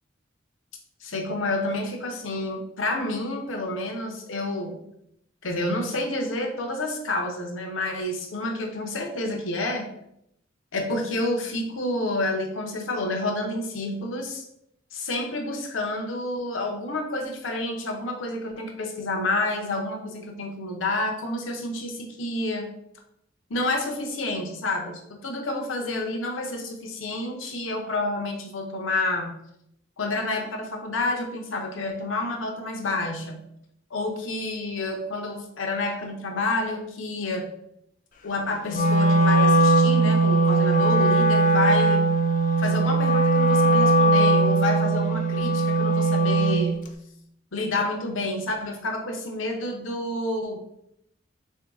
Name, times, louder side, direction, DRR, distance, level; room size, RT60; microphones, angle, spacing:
voice 1, 1.0-4.8 5.4-9.9 10.7-14.4 14.9-22.7 23.5-29.3 30.0-33.4 33.9-37.5 38.2-42.1 42.6-46.8 47.5-50.6, left 2 dB, 85° left, 3 dB, 0.7 m, -29 dB
Wind instrument woodwind instrument, 38.7-46.7, right 2 dB, 45° left, 0.4 m, -20 dB
3.8 x 2.7 x 3.5 m, 0.76 s
head